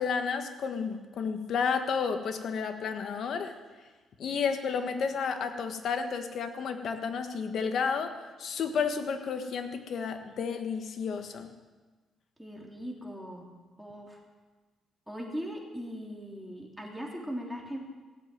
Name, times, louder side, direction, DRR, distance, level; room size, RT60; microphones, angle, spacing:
voice 1, 0.0-3.5 4.2-11.5, left 6 dB, 65° left, 7 dB, 1.5 m, -31 dB
voice 2, 12.4-13.5 13.8-14.2 15.1-17.9, equal, 5° right, -1 dB, 3.5 m, -39 dB
16.0 x 8.0 x 9.1 m, 1.3 s
cardioid pair, 90°, 0 cm